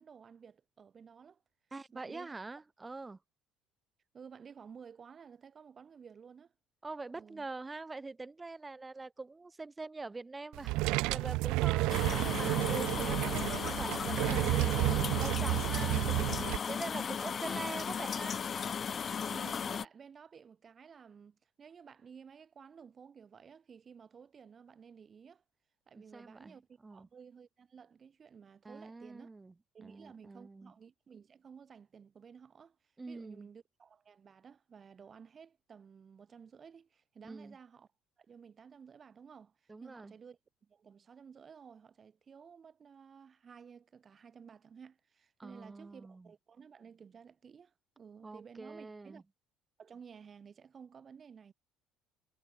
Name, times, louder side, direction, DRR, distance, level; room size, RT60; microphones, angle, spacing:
voice 1, 0.0-1.4 1.9-2.4 4.1-6.5 7.1-7.5 19.3-25.4 25.9-29.3 29.7-32.8 33.1-37.9 38.2-49.2 49.8-51.5, right 6 dB, 40° right, 4.3 m, -54 dB
voice 2, 1.7-3.2 6.8-18.4 25.9-26.6 26.8-27.1 28.6-29.5 29.8-30.7 33.0-33.5 37.2-37.6 39.7-40.1 45.4-46.3 48.2-49.2, right 3 dB, 20° right, 6.6 m, -44 dB
sound 1, 10.5-16.6, right 22 dB, 75° right, 0.3 m, -31 dB
sound 2, 11.9-19.9, left 7 dB, 40° left, 0.4 m, -36 dB
supercardioid pair, 75°, 0 cm